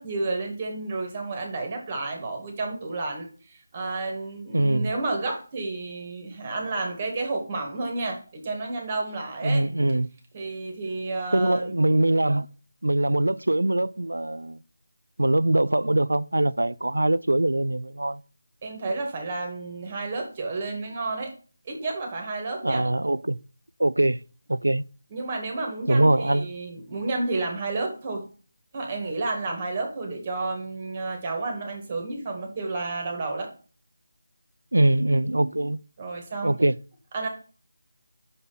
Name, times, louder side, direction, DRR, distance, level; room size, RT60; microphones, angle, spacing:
voice 1, 0.0-9.7 10.3-11.8 18.6-21.3 21.7-22.9 25.1-28.3 28.7-33.5 36.0-36.6 37.1-37.3, right 3 dB, 30° right, 2.0 m, -31 dB
voice 2, 4.5-4.9 9.4-10.1 11.3-12.5 12.8-14.6 15.2-18.2 22.6-23.4 23.8-24.2 24.5-24.8 25.9-26.5 34.7-35.8 36.4-36.8, right 1 dB, 80° right, 0.4 m, -22 dB
6.8 x 4.1 x 5.1 m
figure-of-eight pair, 160°, 0 cm